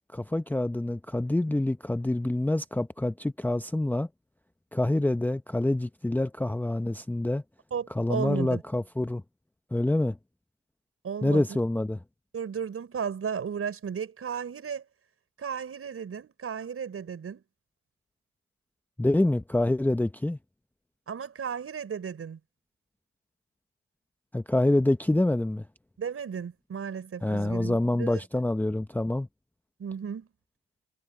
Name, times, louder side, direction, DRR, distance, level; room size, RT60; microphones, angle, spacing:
voice 1, 0.1-4.1 4.7-7.4 7.9-9.2 9.7-10.2 11.2-12.0 19.0-20.4 24.3-25.7 27.2-29.3, left 1 dB, 5° left, 0.8 m, -26 dB
voice 2, 7.7-8.6 11.0-11.6 12.3-14.9 15.4-17.4 21.1-22.4 26.0-28.2 29.8-30.3, right 7 dB, 50° right, 6.1 m, -34 dB
cardioid pair, 90°, 30 cm